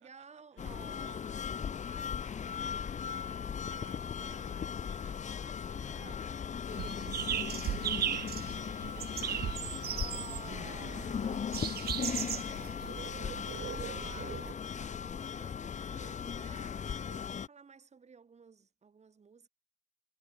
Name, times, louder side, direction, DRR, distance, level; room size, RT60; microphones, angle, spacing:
voice 1, 0.0-1.2 3.6-4.9 5.9-6.3 8.8-11.1 13.6-19.5, right 5 dB, 35° right, 1.6 m, -54 dB
voice 2, 0.5-2.6 3.1-4.5 4.8-9.7 10.0-13.5, right 12 dB, 75° right, 2.9 m, -65 dB
sound 1, 0.6-17.5, left 7 dB, 35° left, 0.7 m, -38 dB
sound 2, 6.7-14.5, right 11 dB, 50° right, 0.6 m, -37 dB
cardioid pair, 90°, 20 cm